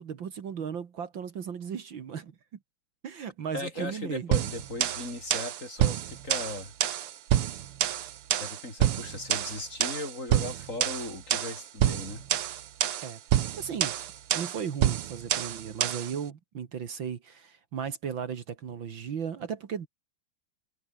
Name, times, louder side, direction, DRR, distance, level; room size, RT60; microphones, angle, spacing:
voice 1, 0.0-2.3 3.0-4.3 13.0-13.9 14.3-19.9, right 7 dB, 60° right, 2.3 m, -36 dB
voice 2, 3.5-6.7 8.4-12.2, left 2 dB, 35° left, 5.4 m, -37 dB
sound 1, 4.3-16.1, right 11 dB, 85° right, 2.1 m, -28 dB
omnidirectional pair, 2.4 m